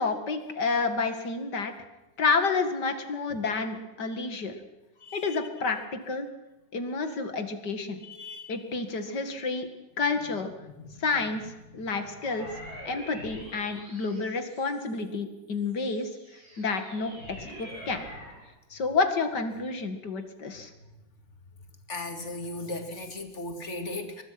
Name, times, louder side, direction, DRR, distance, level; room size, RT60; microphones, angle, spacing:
voice 1, 0.0-1.7 2.2-4.5 5.1-6.3 6.7-8.0 8.5-9.7 10.0-10.5 11.0-12.5 12.9-16.1 16.6-18.0 18.7-20.7, left 4 dB, 55° left, 8 dB, 2.6 m, -29 dB
voice 2, 5.0-5.4 8.0-8.5 10.8-11.1 12.5-12.7 14.0-14.1 17.7-17.9 21.9-24.2, left 2 dB, 35° left, 6 dB, 2.6 m, -37 dB
sound 1, 12.1-15.0 15.6-18.4, equal, 70° right, 8.8 m, -45 dB
23.0 x 20.5 x 6.0 m, 1.1 s
omnidirectional pair, 2.2 m